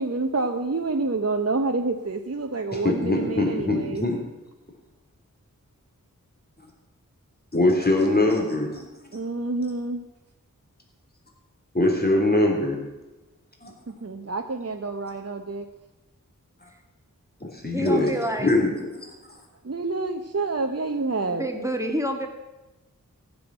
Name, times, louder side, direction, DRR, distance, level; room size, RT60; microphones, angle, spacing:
voice 1, 0.0-4.1 9.1-10.0 13.9-15.7 19.6-21.5, right 3 dB, 45° right, 4 dB, 0.9 m, -28 dB
voice 2, 2.7-4.2 7.5-8.8 9.1-9.2 11.7-12.8 13.6-13.7 17.4-18.1 18.4-18.9, left 2 dB, 30° left, 0 dB, 3.4 m, -22 dB
voice 3, 17.7-18.5 21.3-22.3, right 1 dB, 10° right, 3 dB, 2.1 m, -28 dB
15.0 x 7.2 x 8.8 m, 1.1 s
wide cardioid pair, 50°, 33 cm